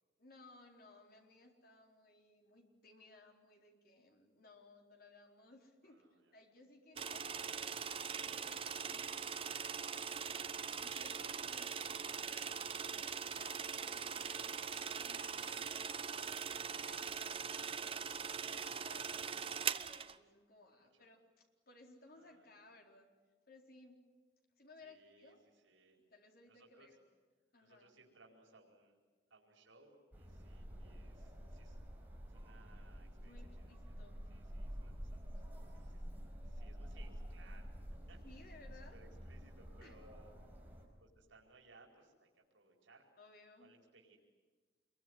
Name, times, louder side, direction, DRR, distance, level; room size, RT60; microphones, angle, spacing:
voice 1, 0.2-6.0 6.3-7.3 8.2-12.6 12.9-15.5 16.0-18.1 18.4-23.1 23.5-24.0 24.6-25.5 26.1-27.0 27.5-27.9 33.2-34.2 38.2-39.0 39.8-40.0 43.2-43.7, left 2 dB, 50° left, 2 dB, 4.2 m, -62 dB
voice 2, 5.8-6.3 8.2-8.3 20.7-21.1 22.1-22.6 24.8-26.0 26.5-26.9 27.6-29.0 29.3-31.8 32.3-33.9 34.3-35.3 35.7-36.1 36.4-37.8 38.1-40.3 41.0-43.1 43.6-44.2, right 3 dB, 85° right, 0 dB, 4.7 m, -65 dB
sound 1, 7.0-20.2, right 6 dB, 30° right, 0.8 m, -41 dB
sound 2, 30.1-40.9, equal, 10° right, 5.0 m, -49 dB
27.0 x 22.5 x 9.7 m, 1.4 s
head